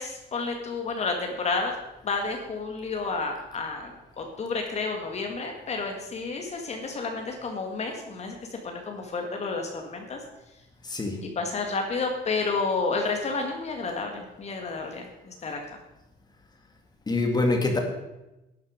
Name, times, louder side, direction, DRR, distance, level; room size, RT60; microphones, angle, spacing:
voice 1, 0.0-1.7 2.0-3.9 4.2-10.2 11.2-15.6, left 4 dB, 40° left, 3 dB, 1.8 m, -30 dB
voice 2, 17.1-17.8, left 2 dB, 25° left, 3 dB, 2.0 m, -24 dB
12.0 x 9.5 x 5.1 m, 0.98 s
cardioid pair, 110°, 17 cm